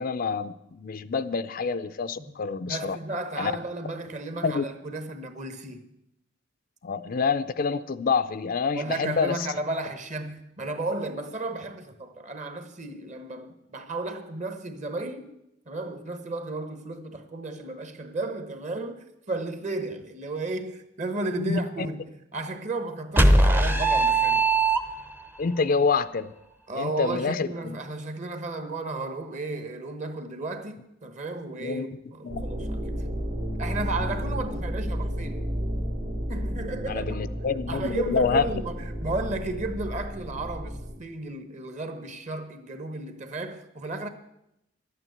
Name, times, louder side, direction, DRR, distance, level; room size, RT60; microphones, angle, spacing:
voice 1, 0.0-3.0 3.4-3.5 4.4-4.6 6.8-9.4 21.4-21.9 23.5-23.6 25.4-26.3 26.7-27.8 31.6-31.8 32.2-32.4 36.9-38.5, left 5 dB, 50° left, 0.4 m, -27 dB
voice 2, 2.6-5.9 8.7-15.3 15.7-24.5 26.7-33.0 33.6-35.5 36.3-37.2 37.7-44.1, right 2 dB, 40° right, 1.1 m, -34 dB
sound 1, 23.2-25.3, right 2 dB, 10° right, 0.6 m, -20 dB
sound 2, 32.3-41.0, equal, 60° right, 1.9 m, -32 dB
11.5 x 9.0 x 7.9 m
head